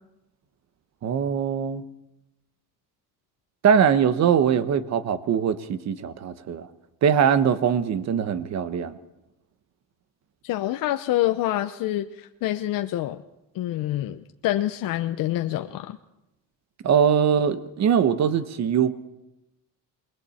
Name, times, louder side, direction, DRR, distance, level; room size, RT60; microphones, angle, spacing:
voice 1, 1.0-1.8 3.6-6.7 7.0-9.0 16.8-18.9, right 8 dB, 50° right, 12 dB, 1.2 m, -22 dB
voice 2, 10.4-13.2 13.5-16.0, left 14 dB, 70° left, 7 dB, 0.8 m, -26 dB
28.0 x 21.5 x 4.4 m, 0.92 s
cardioid pair, 140°, 35 cm